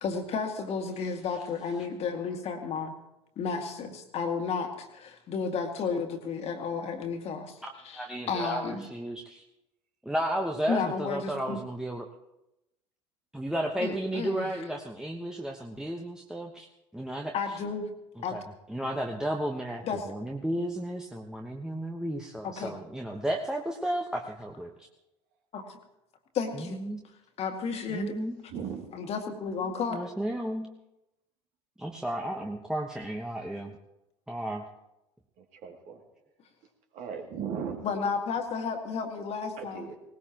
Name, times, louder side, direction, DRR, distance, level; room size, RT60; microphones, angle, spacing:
voice 1, 0.0-2.9 3.4-7.6 7.8-8.8 10.7-11.6 13.8-14.5 17.3-17.9 18.2-18.4 19.8-20.0 22.4-22.8 25.5-25.8 26.3-26.8 27.4-28.1 28.9-30.0 37.8-39.9, left 5 dB, 45° left, 4 dB, 2.1 m, -32 dB
voice 2, 7.6-9.4 10.0-12.1 13.3-16.7 16.9-17.3 18.3-18.4 18.7-24.9 26.5-27.0 27.9-28.4 29.9-30.7 31.8-33.8 34.3-34.7, right 1 dB, 5° right, 1 dB, 1.2 m, -33 dB
voice 3, 28.5-29.0 35.4-36.0 36.9-37.9 39.6-40.0, right 7 dB, 55° right, 2 dB, 2.6 m, -37 dB
19.5 x 18.5 x 3.0 m, 0.92 s
figure-of-eight pair, 70°, 15 cm